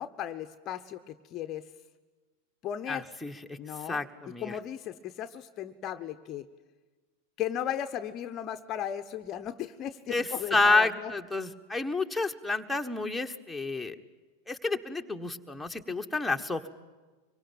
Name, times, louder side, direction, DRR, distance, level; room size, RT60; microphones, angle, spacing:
voice 1, 0.0-1.6 2.6-3.0 3.6-4.0 4.4-6.4 7.4-11.1, left 10 dB, 30° left, 9 dB, 0.9 m, -36 dB
voice 2, 2.9-3.6 3.8-4.6 10.1-14.0 14.5-16.7, left 3 dB, 5° left, 3 dB, 1.5 m, -29 dB
25.0 x 24.0 x 9.1 m, 1.3 s
figure-of-eight pair, 90°, 0 cm